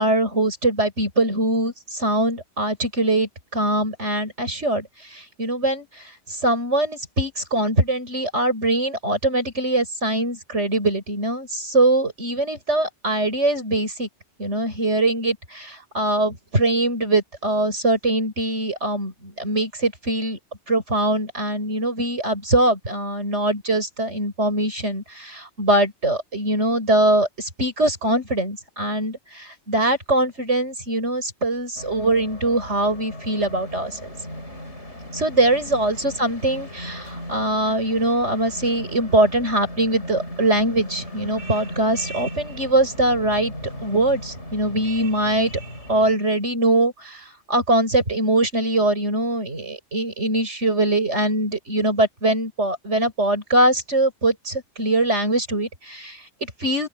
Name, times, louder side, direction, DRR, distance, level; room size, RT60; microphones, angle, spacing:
voice 1, 0.0-6.0 6.4-14.1 14.4-20.4 20.7-34.1 35.1-43.5 43.8-45.5 45.9-56.9, right 1 dB, 80° right, 7.3 m, -22 dB
sound 1, 31.8-46.1, equal, 80° left, 8.1 m, -37 dB
open air
omnidirectional pair, 1.2 m